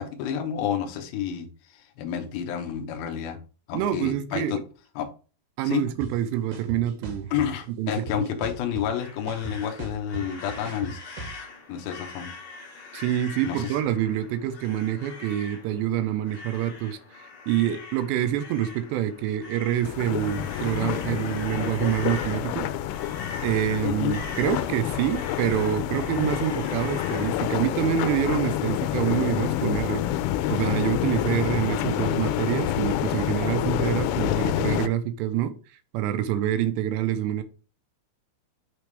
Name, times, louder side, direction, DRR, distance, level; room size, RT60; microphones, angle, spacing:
voice 1, 0.0-3.4 3.7-4.6 5.0-5.1 5.6-5.9 7.3-11.0 11.7-12.3 13.4-13.8 23.8-24.2, left 8 dB, 75° left, 2.3 m, -30 dB
voice 2, 3.7-4.6 5.6-7.3 7.8-8.2 12.9-22.7 23.4-30.0 30.5-35.5 35.9-37.4, right 11 dB, 80° right, 2.7 m, -26 dB
sound 1, 6.0-6.1 6.5-7.5 7.9-9.0 9.3-11.4, right 2 dB, 60° right, 1.7 m, -37 dB
sound 2, 9.0-27.6, left 4 dB, 50° left, 2.2 m, -43 dB
sound 3, 19.8-34.9, left 12 dB, 90° left, 3.0 m, -28 dB
9.0 x 3.5 x 3.3 m
omnidirectional pair, 5.4 m